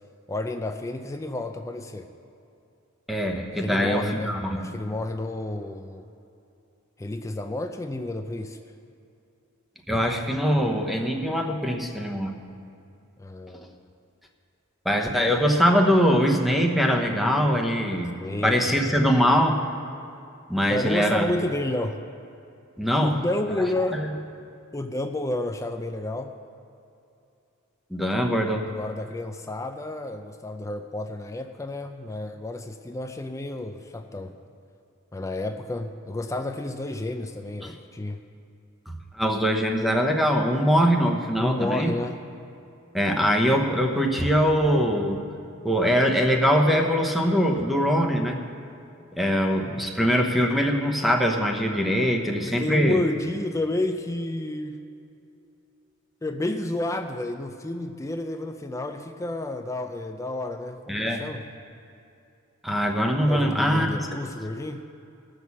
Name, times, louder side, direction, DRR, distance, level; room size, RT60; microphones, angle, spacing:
voice 1, 0.3-2.1 3.5-6.1 7.0-8.6 13.2-13.8 18.0-19.1 20.7-22.0 23.0-24.1 24.7-26.4 28.7-34.4 35.1-38.2 41.4-42.2 52.4-54.8 56.2-61.5 63.3-64.9, left 2 dB, 15° left, 6 dB, 0.4 m, -30 dB
voice 2, 3.1-4.6 9.9-12.3 14.8-18.1 18.4-19.6 20.5-21.2 22.8-23.2 23.9-24.1 27.9-28.6 37.6-37.7 39.1-41.9 42.9-45.2 45.6-48.4 49.1-53.0 60.9-61.2 62.6-64.0, equal, ahead, 2 dB, 0.9 m, -22 dB
16.5 x 6.4 x 7.0 m, 2.6 s
head